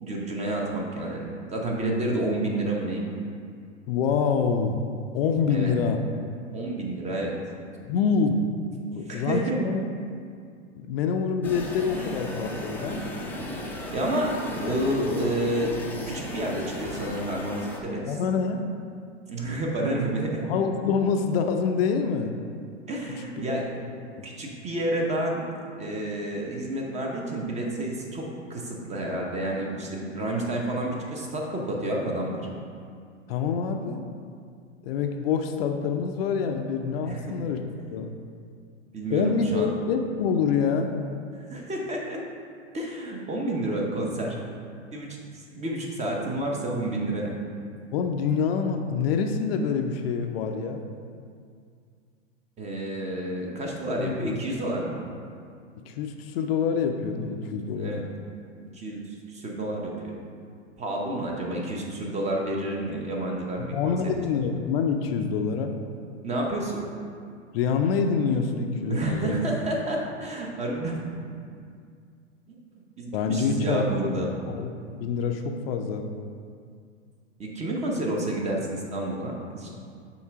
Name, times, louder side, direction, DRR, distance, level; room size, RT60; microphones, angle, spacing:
voice 1, 0.0-3.1 5.5-5.8 6.5-7.3 9.1-9.6 11.9-12.0 13.9-15.7 16.0-18.2 19.3-20.5 22.9-23.7 24.2-25.5 25.8-28.2 28.5-32.5 37.1-37.5 38.9-39.7 41.3-42.2 42.7-44.4 44.9-47.3 52.6-55.0 57.7-58.1 58.7-60.1 60.8-64.1 66.2-66.8 68.9-71.1 72.5-72.6 73.0-74.4 77.4-79.7, right 1 dB, 20° right, -1 dB, 0.8 m, -30 dB
voice 2, 3.9-4.8 5.1-6.0 7.9-8.4 8.9-9.8 10.8-13.0 18.1-18.6 20.4-22.3 23.5-23.6 24.2-24.3 33.3-34.0 34.8-37.6 37.9-38.1 39.1-41.0 47.9-50.8 54.0-54.4 55.9-58.0 63.6-65.8 67.5-69.4 73.1-74.1 74.5-74.7 75.0-76.1, left 6 dB, 55° left, 5 dB, 0.5 m, -26 dB
sound 1, 11.4-17.8, left 1 dB, 5° left, 0.5 m, -35 dB
5.7 x 3.8 x 4.7 m, 2.2 s
hypercardioid pair, 115°, 37 cm